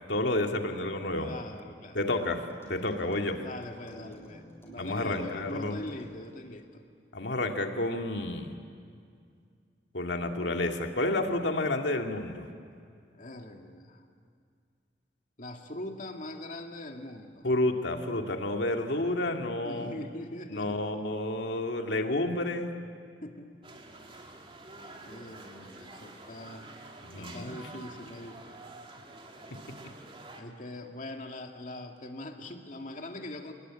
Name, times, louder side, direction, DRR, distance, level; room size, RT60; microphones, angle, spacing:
voice 1, 0.1-1.3 1.9-2.4 2.7-3.4 4.8-5.8 7.1-8.6 9.9-12.5 17.4-19.9 20.5-22.7 27.1-27.6, left 2 dB, 75° left, 3 dB, 2.2 m, -30 dB
voice 2, 1.1-2.1 3.3-6.8 13.1-14.0 15.4-17.5 19.6-20.8 23.2-23.5 25.0-26.7 27.2-28.6 30.3-33.5, left 1 dB, 45° left, 3 dB, 2.3 m, -42 dB
sound 1, 2.1-6.4, equal, 15° left, 6.7 m, -53 dB
sound 2, 23.6-30.4, right 2 dB, 30° right, 2.5 m, -48 dB
28.5 x 20.0 x 10.0 m, 2.3 s
head